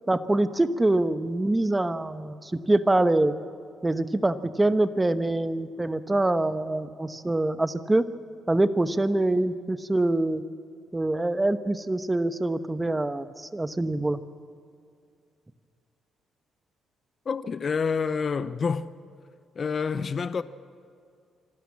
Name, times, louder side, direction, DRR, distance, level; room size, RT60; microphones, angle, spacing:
voice 1, 0.1-3.3 3.8-8.0 8.5-10.4 10.9-14.2, right 2 dB, 15° right, 1.0 m, -25 dB
voice 2, 17.3-18.9 19.5-20.4, left 5 dB, 45° left, 0.6 m, -28 dB
26.0 x 12.5 x 8.6 m
cardioid pair, 90°, 0 cm